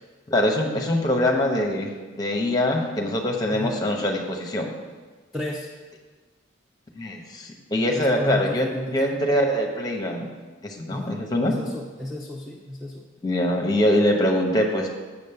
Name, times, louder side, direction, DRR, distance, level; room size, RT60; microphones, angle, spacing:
voice 1, 0.3-1.9 2.2-4.7 6.9-10.3 10.6-11.5 13.2-14.9, left 1 dB, 20° left, 1 dB, 0.9 m, -23 dB
voice 2, 3.5-3.8 5.3-5.7 7.9-9.1 10.9-11.2 11.5-13.0, left 1 dB, ahead, -3 dB, 0.5 m, -33 dB
7.1 x 5.3 x 6.9 m, 1.4 s
head